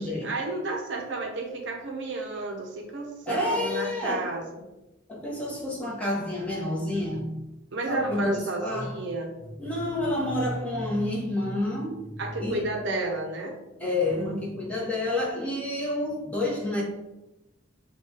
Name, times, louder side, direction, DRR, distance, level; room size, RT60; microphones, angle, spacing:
voice 1, 0.0-4.7 7.7-9.3 12.2-13.6, right 2 dB, 60° right, 2 dB, 0.6 m, -32 dB
voice 2, 3.3-4.3 5.1-7.4 7.9-9.0 9.6-12.7 13.8-16.8, left 1 dB, 5° left, -5 dB, 0.9 m, -29 dB
6.3 x 2.2 x 2.8 m, 0.98 s
head